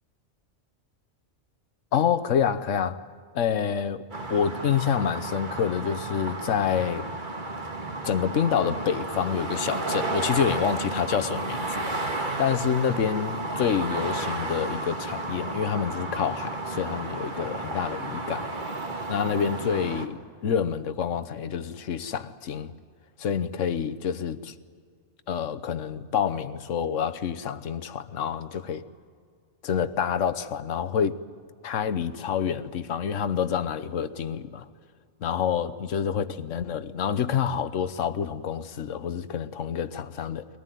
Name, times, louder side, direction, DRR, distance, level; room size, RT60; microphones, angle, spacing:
voice 1, 1.9-3.0 3.3-7.1 8.0-11.9 12.4-18.5 19.1-22.7 23.2-24.5 25.3-28.8 29.6-31.2 31.6-34.6 35.2-40.5, left 7 dB, 80° left, 1.3 m, -27 dB
sound 1, 4.1-20.1, right 2 dB, 40° right, 1.9 m, -32 dB
23.0 x 18.5 x 9.2 m
omnidirectional pair, 1.3 m